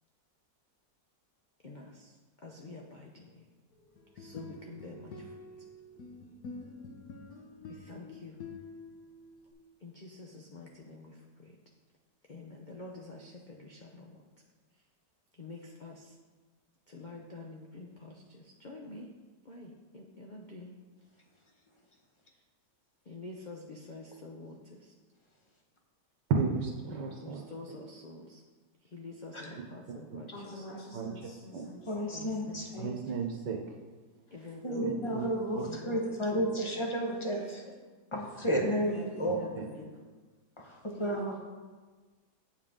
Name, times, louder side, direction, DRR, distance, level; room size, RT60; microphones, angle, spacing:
voice 1, 1.6-2.1 2.4-3.4 4.1-5.3 7.7-8.4 9.8-11.5 12.3-14.2 15.4-16.1 16.9-19.1 19.4-20.7 23.1-24.9 27.2-28.4 28.9-30.3 32.1-32.6 34.3-34.9 35.7-36.0 36.3-36.5 36.8-36.9 39.3-39.9, left 2 dB, 80° left, -1 dB, 0.4 m, -47 dB
sound 1, 4.0-9.5, left 3 dB, 60° left, 1.2 m, -47 dB
voice 2, 26.3-27.4 30.9-31.1 31.5-31.6 32.8-33.6 34.8-35.2 35.5-35.6 39.5-39.6, right 5 dB, 75° right, 1 dB, 1.5 m, -33 dB
voice 3, 30.3-32.1 34.3-36.7 37.0-37.6 38.4-39.8 41.0-41.3, equal, 45° left, -7 dB, 1.8 m, -47 dB
voice 4, 31.9-32.9 34.6-35.6 35.9-37.6 38.1-39.4 40.6-41.3, equal, 25° left, 0 dB, 0.8 m, -32 dB
8.4 x 7.2 x 3.7 m, 1.4 s
omnidirectional pair, 1.9 m